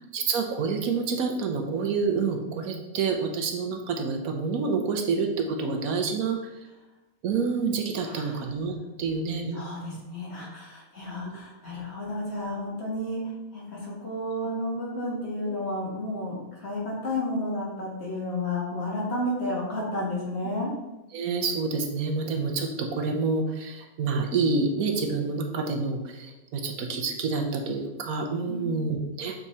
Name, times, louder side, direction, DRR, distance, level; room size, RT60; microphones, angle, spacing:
voice 1, 0.1-6.4 7.2-10.0 11.2-11.4 15.5-15.6 21.1-29.3, right 4 dB, 80° right, 3 dB, 1.3 m, -28 dB
voice 2, 8.0-8.4 9.5-20.7 28.5-28.9, left 1 dB, 50° left, -5 dB, 2.1 m, -32 dB
6.8 x 3.7 x 4.2 m, 0.98 s
omnidirectional pair, 1.5 m